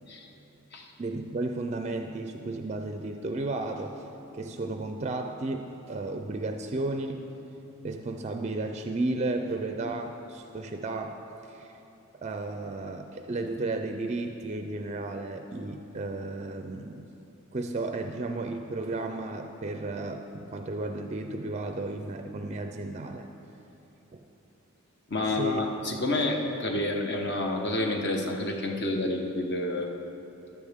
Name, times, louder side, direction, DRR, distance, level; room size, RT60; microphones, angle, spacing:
voice 1, 1.0-4.1 4.3-7.2 7.8-11.8 12.1-17.0 17.5-23.3 24.1-24.3 25.3-25.6, right 2 dB, 30° right, 5 dB, 0.4 m, -33 dB
voice 2, 25.1-30.0, left 2 dB, 50° left, 2 dB, 1.1 m, -29 dB
15.0 x 10.5 x 3.6 m, 3.0 s
head